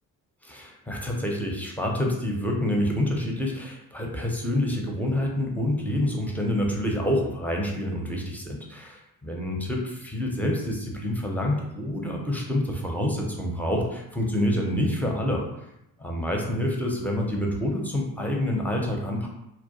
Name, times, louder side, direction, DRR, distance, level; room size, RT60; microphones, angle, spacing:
voice 1, 0.4-15.4 16.0-19.3, left 1 dB, 5° left, -1 dB, 0.4 m, -27 dB
2.3 x 2.1 x 2.8 m, 0.83 s
figure-of-eight pair, 40°, 48 cm